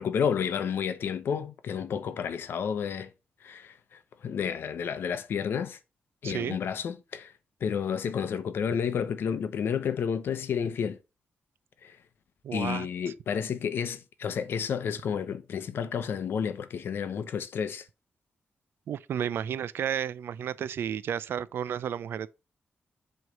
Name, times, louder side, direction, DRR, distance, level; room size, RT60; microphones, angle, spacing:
voice 1, 0.0-3.1 3.4-5.8 6.2-7.3 7.6-11.0 11.8-12.0 12.5-17.8, left 7 dB, 75° left, 0.8 m, -31 dB
voice 2, 6.2-6.6 12.4-12.9 18.9-22.3, right 9 dB, 90° right, 0.4 m, -32 dB
7.7 x 3.2 x 5.1 m
wide cardioid pair, 175°, 4 cm